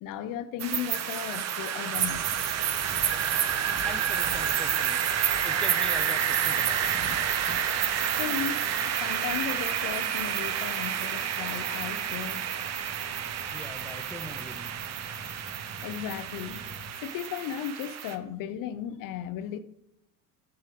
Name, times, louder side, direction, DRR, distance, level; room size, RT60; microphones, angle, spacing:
voice 1, 0.0-2.4 8.2-12.4 15.8-16.6 16.9-19.6, left 9 dB, 45° left, 0.7 m, -36 dB
sound 1, 0.6-18.1, right 9 dB, 35° right, 0.8 m, -29 dB
sound 2, 1.9-16.9, right 2 dB, 15° right, 1.1 m, -46 dB
voice 2, 3.8-5.0 5.4-6.9 13.5-14.7, left 1 dB, ahead, 0.4 m, -42 dB
7.7 x 5.5 x 3.6 m
hypercardioid pair, 80°, 46 cm